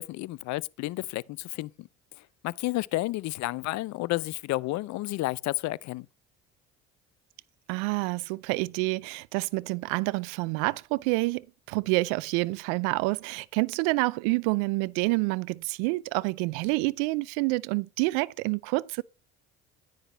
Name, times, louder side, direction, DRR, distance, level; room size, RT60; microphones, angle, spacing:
voice 1, 0.0-1.9 2.4-6.1, left 19 dB, 60° left, 0.6 m, -31 dB
voice 2, 7.7-19.0, right 24 dB, 75° right, 0.5 m, -28 dB
10.5 x 9.8 x 3.2 m
hypercardioid pair, 65°, 32 cm